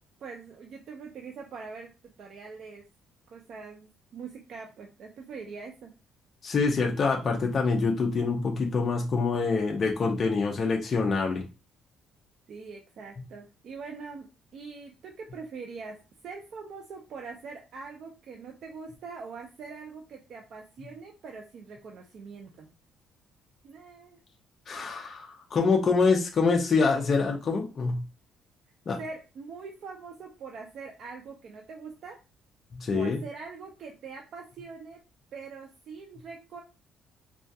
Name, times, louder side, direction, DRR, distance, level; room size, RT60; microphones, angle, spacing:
voice 1, 0.2-1.9 2.2-2.8 3.3-5.9 12.5-16.0 16.2-22.7 23.6-24.2 29.0-32.2 32.9-35.0 35.3-36.6, right 4 dB, 45° right, 2 dB, 0.4 m, -43 dB
voice 2, 6.4-11.4 24.7-28.0 28.9-29.0 32.7-33.2, left 4 dB, 30° left, 1 dB, 0.4 m, -25 dB
2.2 x 2.2 x 2.6 m, 0.30 s
cardioid pair, 175°, 0 cm